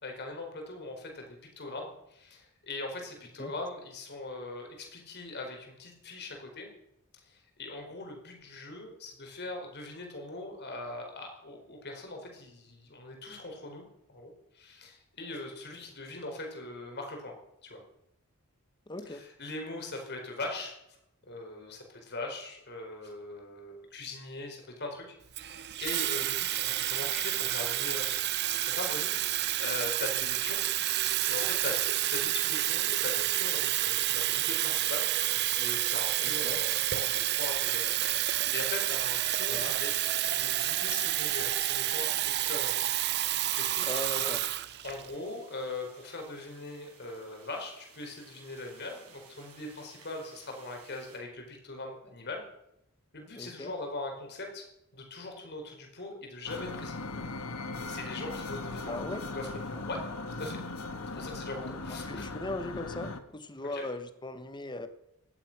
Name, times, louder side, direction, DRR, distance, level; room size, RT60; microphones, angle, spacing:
voice 1, 0.0-6.7 7.2-13.8 14.1-17.3 17.6-17.8 19.1-20.8 21.2-30.6 31.2-35.1 35.4-44.4 44.8-52.4 53.1-54.7 54.9-57.0 57.7-59.0 59.3-60.0 60.4-60.6 61.1-62.3 63.6-63.9, left 2 dB, 50° left, 2 dB, 4.6 m, -41 dB
voice 2, 18.9-19.2 36.2-36.6 39.5-39.7 43.8-44.4 53.4-53.7 58.9-59.2 61.9-64.9, left 2 dB, 20° left, 10 dB, 1.3 m, -38 dB
Water tap faucet / Fill (with liquid), 25.3-45.1, right 14 dB, 50° right, 0.6 m, -29 dB
sound 1, 40.4-51.2, right 6 dB, 90° right, 5.3 m, -54 dB
sound 2, 56.5-63.2, left 3 dB, 80° left, 1.6 m, -38 dB
18.0 x 12.5 x 6.0 m, 0.81 s
head